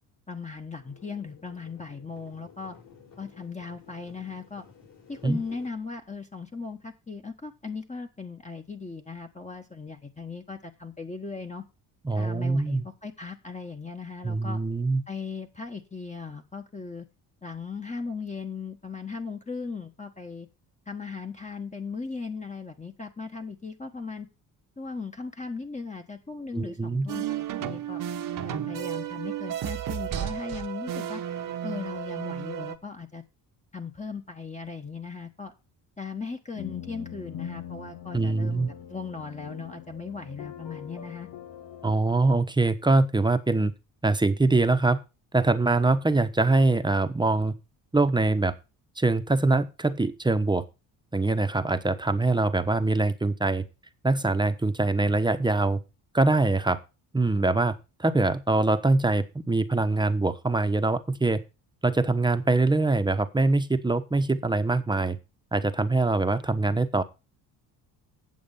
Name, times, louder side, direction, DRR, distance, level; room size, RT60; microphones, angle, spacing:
voice 1, 0.3-2.8 3.2-4.7 5.1-11.6 12.1-14.6 15.1-17.1 17.4-20.5 20.9-24.3 24.8-28.0 28.4-31.2 31.6-33.2 33.7-35.5 36.0-41.3, left 4 dB, 15° left, 5 dB, 1.3 m, -38 dB
sound 1, 0.6-5.7, left 7 dB, 55° left, 5.5 m, -53 dB
voice 2, 12.0-12.8 14.2-15.0 26.5-27.1 38.1-38.7 41.8-43.7 44.0-45.0 45.3-47.5 47.9-48.5 49.0-50.6 51.1-53.6 54.0-55.8 56.1-56.8 57.1-57.7 58.0-61.4 61.8-65.2 65.5-67.0, right 2 dB, 10° right, 10 dB, 1.1 m, -23 dB
sound 2, 27.1-32.8, right 11 dB, 50° right, 1.1 m, -33 dB
sound 3, 36.5-42.0, left 9 dB, 80° left, 1.6 m, -42 dB
8.8 x 7.1 x 5.5 m, 0.28 s
supercardioid pair, 80°, 41 cm